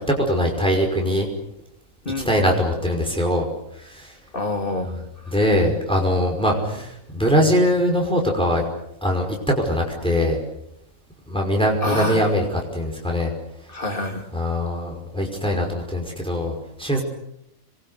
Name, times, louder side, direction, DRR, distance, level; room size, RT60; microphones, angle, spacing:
voice 1, 0.1-1.3 2.2-3.5 3.8-4.2 5.3-8.6 9.0-10.4 11.3-13.3 14.3-17.0, equal, 5° left, 0 dB, 5.5 m, -22 dB
voice 2, 4.3-4.9 5.2-5.4 6.7-6.8 11.8-12.3 13.7-14.3, left 2 dB, 40° left, 4 dB, 2.7 m, -27 dB
27.5 x 23.0 x 8.2 m, 0.80 s
omnidirectional pair, 1.4 m